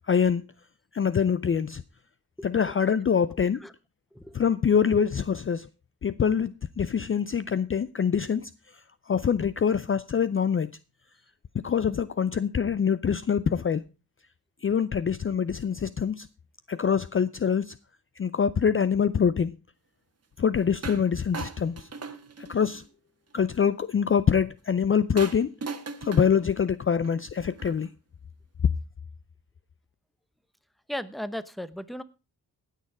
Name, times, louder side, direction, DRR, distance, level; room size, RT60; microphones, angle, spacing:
voice 1, 0.1-0.4 0.9-1.8 2.4-3.6 4.3-5.7 6.0-8.5 9.1-10.7 11.5-13.8 14.6-16.3 16.7-17.7 18.2-19.5 20.4-21.9 22.5-22.8 23.3-25.5 26.0-27.9, left 7 dB, 35° left, 0.5 m, -25 dB
voice 2, 2.4-2.8 3.6-3.7 4.1-4.4 30.9-32.0, equal, ahead, 0.9 m, -36 dB
sound 1, 20.8-21.1 21.3-22.9 25.2-27.9, right 4 dB, 40° right, 1.4 m, -39 dB
17.5 x 6.6 x 4.8 m
cardioid pair, 85°, 38 cm